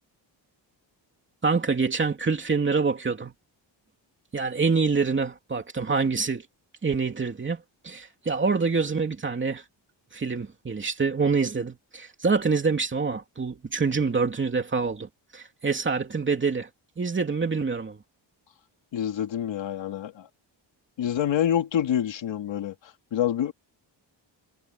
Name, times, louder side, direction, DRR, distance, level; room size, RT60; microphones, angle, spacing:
voice 1, 1.4-3.3 4.3-6.4 6.8-9.6 10.1-16.7 17.0-18.0, right 4 dB, 25° right, 2.9 m, -26 dB
voice 2, 18.9-20.3 21.0-23.5, left 10 dB, 80° left, 2.6 m, -27 dB
wide cardioid pair, 180°, 45 cm